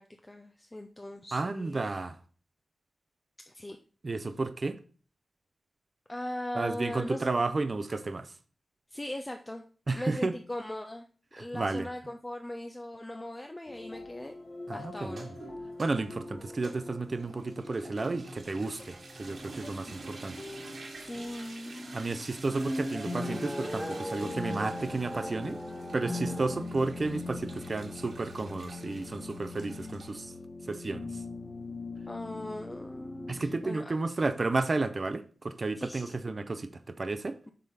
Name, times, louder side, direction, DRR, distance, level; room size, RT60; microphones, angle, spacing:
voice 1, 0.0-1.8 3.5-3.8 6.1-7.3 8.9-9.6 9.9-11.1 11.4-14.3 14.7-15.3 21.0-22.1 32.1-34.0 35.8-36.2, left 1 dB, 15° left, 0.6 m, -39 dB
voice 2, 1.3-2.2 4.0-4.8 6.5-8.3 9.9-10.3 11.3-11.9 14.7-15.2 15.8-20.4 21.9-25.6 25.9-30.3 30.7-31.1 33.3-37.4, right 3 dB, 35° right, 0.6 m, -32 dB
sound 1, 13.7-33.6, left 3 dB, 30° left, 1.3 m, -42 dB
sound 2, 15.0-30.1, right 3 dB, 60° right, 1.8 m, -48 dB
sound 3, 22.2-26.6, equal, 5° right, 1.3 m, -38 dB
7.4 x 3.7 x 5.6 m
wide cardioid pair, 135°, 0 cm